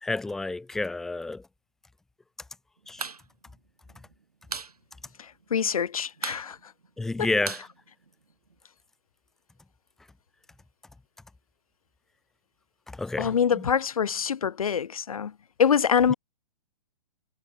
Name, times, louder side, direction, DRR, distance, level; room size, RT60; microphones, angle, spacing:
voice 1, 0.0-1.5 2.9-3.1 7.0-7.7 12.9-13.7 16.1-16.2, left 3 dB, ahead, 0.3 m, -30 dB
sound 1, 2.8-3.2 3.5-3.6 3.9-4.7 5.1-5.2 5.4-5.8 6.2-8.5, right 5 dB, 75° right, 1.7 m, -37 dB
voice 2, 5.2-6.7 7.2-7.3 13.2-15.3 15.6-16.1, left 7 dB, 65° left, 0.8 m, -25 dB
figure-of-eight pair, 125°, 20 cm